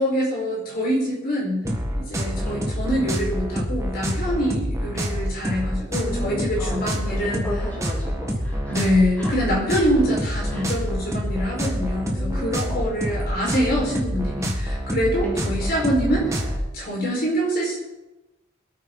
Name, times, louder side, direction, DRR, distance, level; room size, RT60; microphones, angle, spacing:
voice 1, 0.0-1.7 2.0-7.5 8.7-17.8, equal, 45° left, -4 dB, 5.1 m, -25 dB
sound 1, 1.6-16.7, equal, 15° right, 1.5 m, -27 dB
voice 2, 6.0-8.9 9.2-9.3 10.5-10.8 11.6-11.7 12.1-13.3 15.2-15.5, left 1 dB, 10° left, -7 dB, 3.8 m, -35 dB
23.5 x 8.9 x 4.0 m, 1.0 s
head